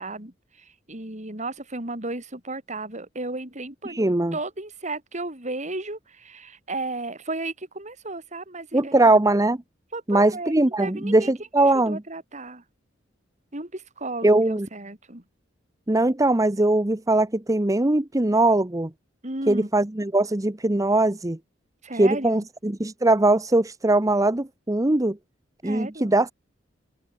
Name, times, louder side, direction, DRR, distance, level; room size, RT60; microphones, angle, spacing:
voice 1, 0.0-4.0 4.3-9.1 9.9-11.3 11.6-12.6 13.5-15.2 19.2-19.7 21.8-22.5 25.6-26.1, right 2 dB, 40° right, 4.9 m, -34 dB
voice 2, 3.9-4.4 8.7-9.6 10.1-12.0 14.2-14.7 15.9-18.9 19.5-21.4 21.9-25.2 25.6-26.3, right 2 dB, 15° right, 0.8 m, -21 dB
open air
head